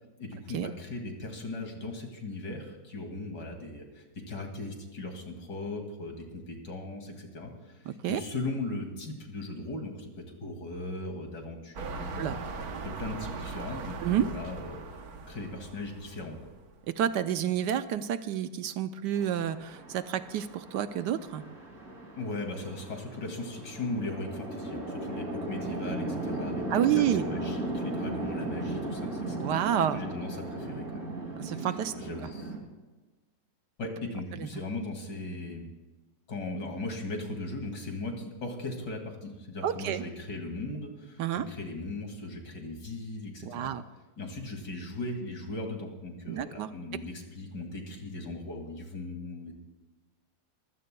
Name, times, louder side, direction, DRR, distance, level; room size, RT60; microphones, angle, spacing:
voice 1, 0.2-14.9 15.3-16.5 22.2-29.4 29.7-31.1 31.4-32.5 33.8-35.7 36.3-43.7 44.2-49.5, left 2 dB, 65° left, 2 dB, 2.9 m, -38 dB
voice 2, 7.9-8.2 12.2-12.4 14.0-14.2 16.9-21.4 26.7-27.2 29.4-30.0 31.4-31.9 39.6-40.0 41.2-41.4 43.5-43.8 46.3-46.7, right 10 dB, 75° right, 11 dB, 1.2 m, -29 dB
sound 1, 11.7-16.7 17.4-17.5, right 4 dB, 60° right, 1.4 m, -40 dB
Chatter / Traffic noise roadway noise / Train, 19.2-32.6, right 1 dB, 40° right, 3.0 m, -36 dB
24.0 x 16.0 x 2.3 m, 1.2 s
omnidirectional pair, 2.0 m